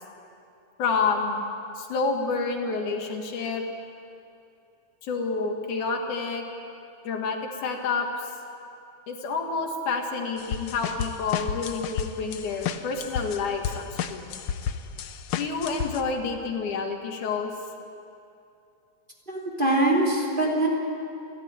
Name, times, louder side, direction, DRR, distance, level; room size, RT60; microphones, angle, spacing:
voice 1, 0.8-1.5 1.8-3.6 5.0-6.5 7.1-8.3 9.1-14.4 15.4-17.5, left 4 dB, 90° left, 2 dB, 3.5 m, -29 dB
sound 1, 10.4-16.0, left 8 dB, 70° left, 1.3 m, -32 dB
voice 2, 19.3-20.7, right 2 dB, 15° right, -1 dB, 3.0 m, -23 dB
28.5 x 13.0 x 9.7 m, 2.6 s
omnidirectional pair, 3.4 m